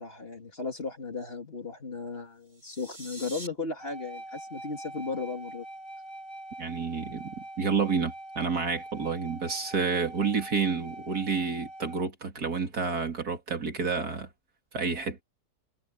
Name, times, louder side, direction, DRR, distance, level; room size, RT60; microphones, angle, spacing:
voice 1, 0.0-5.6, left 4 dB, 40° left, 2.8 m, -36 dB
sound 1, 2.4-3.5, right 1 dB, 25° right, 2.6 m, -44 dB
sound 2, 3.8-12.1, right 1 dB, 55° left, 5.9 m, -43 dB
voice 2, 6.6-14.3 14.7-15.2, right 5 dB, 70° right, 3.1 m, -29 dB
omnidirectional pair, 1.7 m